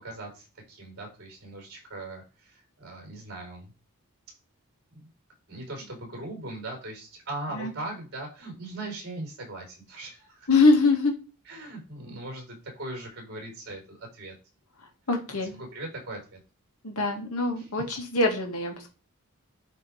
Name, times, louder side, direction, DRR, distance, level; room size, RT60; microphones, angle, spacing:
voice 1, 0.0-3.7 4.9-5.1 5.5-10.5 11.4-14.3 15.5-16.4 17.0-17.1 17.6-17.7, right 2 dB, 50° right, 1 dB, 5.0 m, -39 dB
voice 2, 10.5-11.1 15.1-15.6 16.8-18.9, left 3 dB, 80° left, 2 dB, 2.2 m, -23 dB
11.0 x 3.7 x 5.0 m, 0.33 s
head